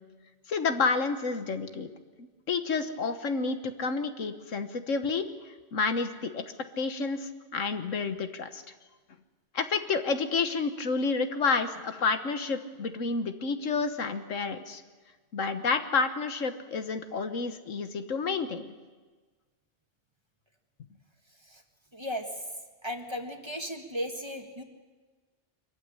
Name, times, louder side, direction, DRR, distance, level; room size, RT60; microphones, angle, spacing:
voice 1, 0.5-1.9 2.2-5.3 5.7-6.4 6.8-8.6 9.5-14.8 15.3-18.7, left 4 dB, 85° left, 8 dB, 1.6 m, -30 dB
voice 2, 21.9-22.3 22.8-24.6, equal, 20° right, 4 dB, 1.9 m, -35 dB
24.0 x 14.5 x 9.9 m, 1.3 s
omnidirectional pair, 1.3 m